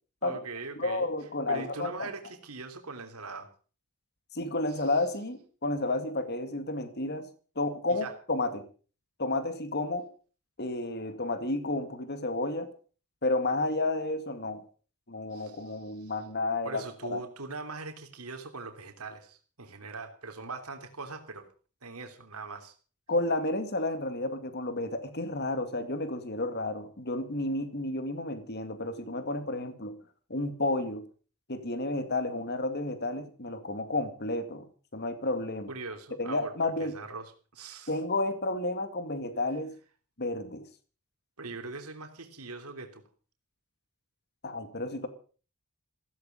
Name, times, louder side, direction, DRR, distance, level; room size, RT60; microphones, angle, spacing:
voice 1, 0.2-1.1 1.5-3.5 4.7-4.8 7.9-8.1 15.3-16.1 16.6-21.5 21.8-22.7 35.7-36.5 36.8-38.0 41.4-43.0, right 3 dB, 85° right, 3.1 m, -41 dB
voice 2, 0.8-2.1 4.3-7.3 7.6-8.6 9.2-10.1 10.6-12.7 13.2-14.6 15.1-17.2 23.1-29.9 30.3-31.0 31.5-34.6 34.9-35.7 36.2-36.9 37.9-39.7 40.2-40.6 44.4-45.1, left 2 dB, 50° left, 2.2 m, -31 dB
16.0 x 15.5 x 5.3 m
head